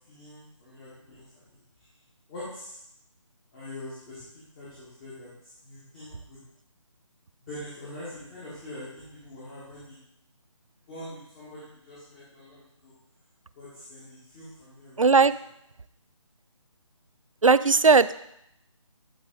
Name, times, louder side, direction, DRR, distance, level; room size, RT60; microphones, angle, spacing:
voice 1, 0.1-1.9 2.3-2.8 3.5-4.3 4.6-5.3 5.6-6.4 7.4-10.0 10.9-12.9 13.6-15.1, left 1 dB, 20° left, -10 dB, 1.8 m, -43 dB
voice 2, 15.0-15.3 17.4-18.1, right 4 dB, 80° right, 15 dB, 0.4 m, -17 dB
12.0 x 4.0 x 3.9 m, 0.77 s
figure-of-eight pair, 150°, 17 cm